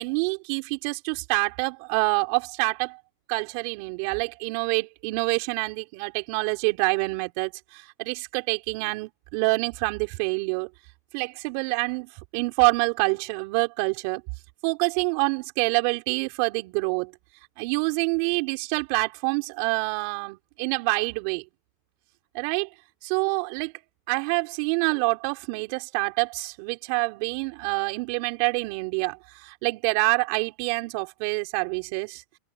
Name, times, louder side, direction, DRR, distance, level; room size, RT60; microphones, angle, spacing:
voice 1, 0.0-3.0 3.3-10.7 11.1-14.2 14.6-17.1 17.6-21.4 22.3-22.7 23.0-23.7 24.1-32.2, right 30 dB, 55° right, 4.8 m, -26 dB
supercardioid pair, 130°, 0 cm